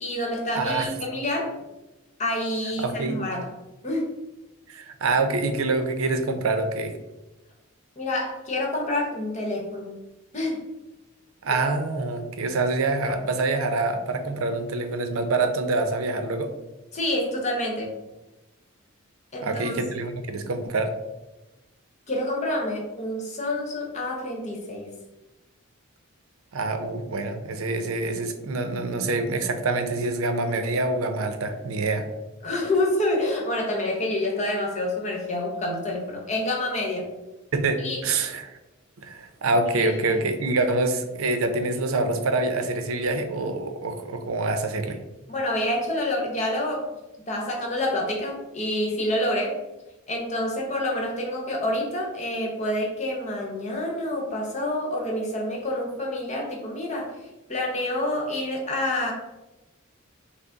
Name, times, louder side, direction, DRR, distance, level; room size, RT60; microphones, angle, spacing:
voice 1, 0.0-1.5 2.2-3.5 3.8-4.1 8.0-9.9 10.3-10.6 16.9-17.9 19.3-19.8 22.1-24.9 32.4-37.1 37.8-38.0 39.8-40.2 45.3-46.9 47.3-49.6 50.1-57.1 57.5-59.1, left 1 dB, 35° left, 0 dB, 0.9 m, -27 dB
voice 2, 0.5-0.9 2.8-3.2 4.7-6.9 11.4-16.5 19.4-20.9 26.5-32.1 37.5-38.6 39.0-45.0, right 3 dB, 85° right, 7 dB, 0.5 m, -26 dB
5.9 x 2.0 x 3.8 m, 1.0 s
head